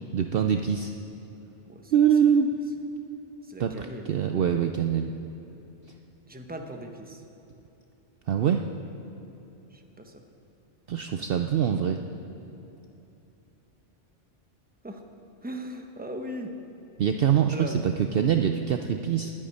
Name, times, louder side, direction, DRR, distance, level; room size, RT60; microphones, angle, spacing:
voice 1, 0.1-0.9 1.9-2.5 3.6-5.1 8.3-8.6 10.9-12.0 17.0-19.3, right 8 dB, 60° right, 6 dB, 0.7 m, -24 dB
voice 2, 3.4-4.3 6.3-7.2 9.7-10.2 14.8-15.0 15.4-16.5 17.5-17.8, right 1 dB, 10° right, 4 dB, 0.9 m, -39 dB
10.0 x 9.3 x 9.9 m, 2.9 s
omnidirectional pair, 1.2 m